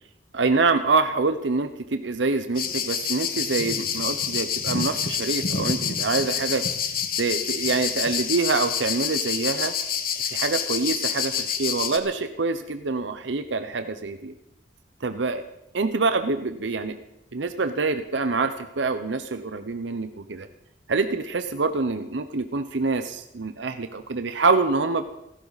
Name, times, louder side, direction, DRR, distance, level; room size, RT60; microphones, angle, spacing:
voice 1, 0.3-6.6 7.2-9.7 10.2-14.3 15.0-15.4 15.7-17.0 17.3-20.5 20.9-25.1, right 3 dB, 85° right, 9 dB, 0.8 m, -25 dB
sound 1, 2.6-12.0, left 7 dB, 55° left, 1.4 m, -27 dB
28.5 x 12.0 x 4.1 m, 0.85 s
head